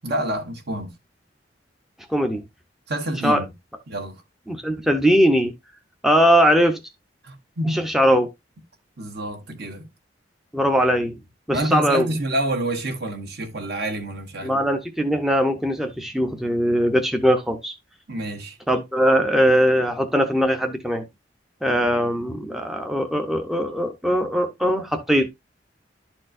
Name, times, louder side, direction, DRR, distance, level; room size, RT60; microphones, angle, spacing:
voice 1, 0.0-0.9 2.9-3.5 3.9-4.2 7.2-7.9 9.0-9.9 11.5-14.6 18.1-18.6, right 1 dB, 60° right, 1.5 m, -28 dB
voice 2, 2.1-2.4 3.2-3.4 4.5-5.5 6.0-6.8 7.7-8.3 10.5-11.2 11.5-12.1 14.4-17.7 18.7-21.0 21.6-25.3, equal, ahead, 0.7 m, -20 dB
11.5 x 4.4 x 2.5 m
head